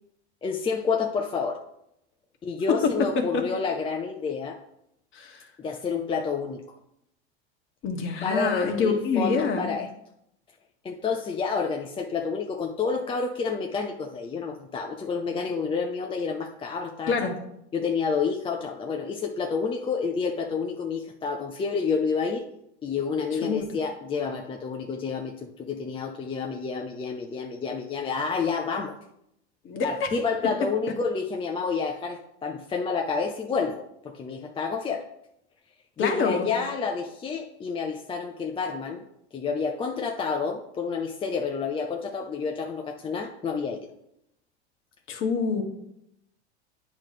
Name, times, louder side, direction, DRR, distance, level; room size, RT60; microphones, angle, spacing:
voice 1, 0.4-1.6 2.4-4.6 5.6-6.6 8.2-9.9 10.8-17.1 17.7-22.4 22.8-29.0 29.8-35.0 36.0-39.0 39.3-43.9, left 5 dB, 15° left, 3 dB, 0.5 m, -29 dB
voice 2, 5.1-5.5 7.8-9.7 17.1-17.3 23.4-23.6 29.6-30.1 36.0-36.5 45.1-45.6, left 5 dB, 35° left, 3 dB, 1.5 m, -26 dB
8.7 x 3.2 x 5.8 m, 0.80 s
hypercardioid pair, 105°, 34 cm